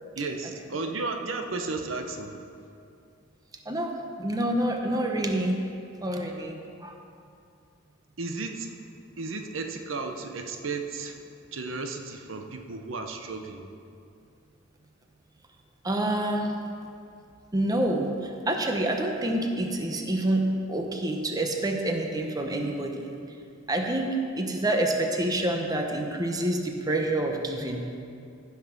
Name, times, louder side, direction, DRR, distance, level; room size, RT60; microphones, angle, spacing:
voice 1, 0.2-2.4 8.2-8.7 9.2-11.3 11.5-13.7, right 3 dB, 70° right, 5 dB, 0.9 m, -34 dB
voice 2, 3.7-5.6 6.0-6.9 15.8-16.6 17.5-23.1 23.7-27.8, right 1 dB, 20° right, 2 dB, 0.9 m, -27 dB
15.0 x 5.9 x 6.0 m, 2.5 s
head